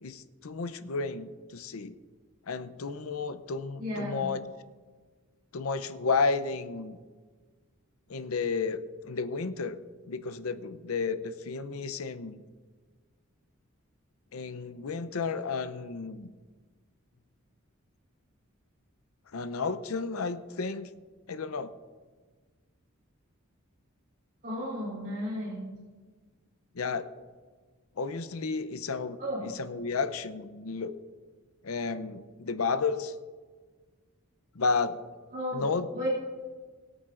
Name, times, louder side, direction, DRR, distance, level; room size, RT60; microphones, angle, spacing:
voice 1, 0.0-2.0 2.5-4.4 5.5-7.0 8.1-9.8 10.1-12.4 14.3-16.3 19.3-20.9 21.3-21.7 26.7-27.1 28.0-30.9 31.6-33.1 34.5-35.0 35.5-36.1, left 4 dB, 90° left, 12 dB, 0.6 m, -32 dB
voice 2, 3.8-4.2 24.4-25.6 29.2-29.4 35.3-35.6 35.9-36.1, equal, 45° right, -7 dB, 4.0 m, -33 dB
22.0 x 8.7 x 2.5 m, 1.4 s
head